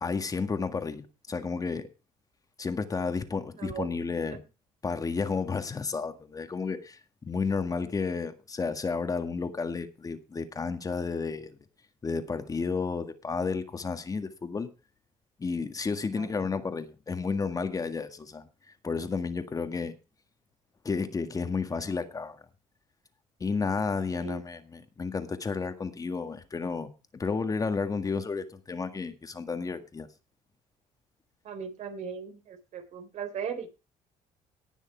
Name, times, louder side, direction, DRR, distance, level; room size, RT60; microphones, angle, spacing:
voice 1, 0.0-1.9 2.6-4.4 4.8-11.6 12.0-14.7 15.4-18.5 18.8-19.9 20.8-22.4 23.4-30.1, left 4 dB, 25° left, 1.7 m, -32 dB
voice 2, 31.4-33.7, right 7 dB, 60° right, 3.5 m, -38 dB
18.5 x 6.3 x 4.5 m
cardioid pair, 105°, 14 cm